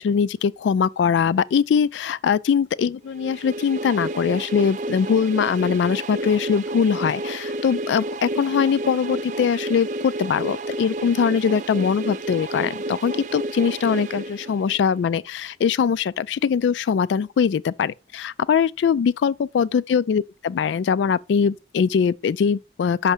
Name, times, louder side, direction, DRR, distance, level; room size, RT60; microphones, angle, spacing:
voice 1, 0.0-23.1, left 6 dB, 90° left, 0.3 m, -22 dB
sound 1, 3.2-15.0, right 1 dB, 45° right, 0.4 m, -31 dB
5.8 x 5.4 x 6.2 m
head